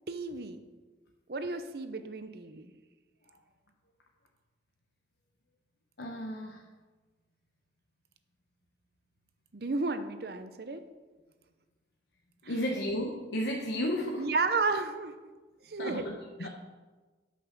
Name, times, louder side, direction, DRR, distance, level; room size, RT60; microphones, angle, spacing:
voice 1, 0.1-0.6 1.3-2.7 9.5-10.8 12.4-12.5 14.2-15.2 15.7-16.1 16.4-16.5, right 3 dB, 55° right, 9 dB, 0.6 m, -32 dB
voice 2, 6.0-6.6 12.5-14.3 15.8-16.5, equal, 75° left, -1 dB, 0.9 m, -33 dB
8.3 x 5.9 x 6.0 m, 1.3 s
head